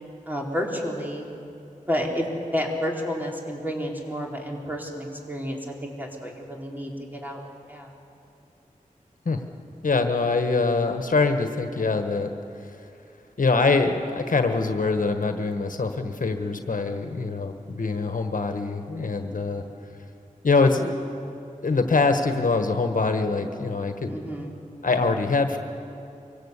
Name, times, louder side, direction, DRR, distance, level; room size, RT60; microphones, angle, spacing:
voice 1, 0.3-1.3 1.9-2.2 2.5-7.4 7.7-7.9 19.2-19.5 24.0-24.5, equal, 15° right, -1 dB, 4.4 m, -30 dB
voice 2, 9.8-12.3 13.4-19.6 20.4-21.0 21.6-24.2 24.8-25.6, left 3 dB, 70° left, 6 dB, 1.4 m, -24 dB
24.5 x 17.0 x 8.3 m, 2.7 s
cardioid pair, 45°, 14 cm